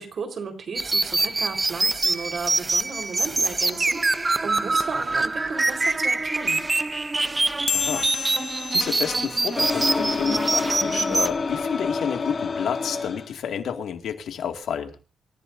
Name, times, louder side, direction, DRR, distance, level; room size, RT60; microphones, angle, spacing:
voice 1, 0.0-6.6, right 5 dB, 55° right, 6 dB, 4.2 m, -35 dB
sound 1, 0.7-11.3, right 3 dB, 20° right, 0.8 m, -24 dB
voice 2, 7.7-8.1 8.7-14.9, left 8 dB, 85° left, 5 dB, 2.2 m, -30 dB
sound 2, 7.7-10.5, left 7 dB, 60° left, 0.8 m, -32 dB
sound 3, 9.5-13.3, left 4 dB, 40° left, 2.0 m, -28 dB
27.0 x 14.5 x 2.7 m, 0.34 s
cardioid pair, 120°, 0 cm